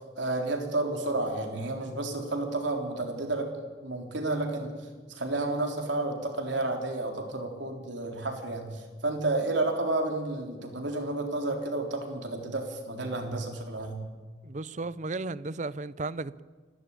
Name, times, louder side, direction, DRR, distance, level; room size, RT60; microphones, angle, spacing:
voice 1, 0.2-3.5 3.8-14.0, right 2 dB, 70° right, 3.8 m, -31 dB
voice 2, 14.4-16.4, right 3 dB, 40° right, 0.6 m, -34 dB
29.0 x 12.5 x 8.8 m
head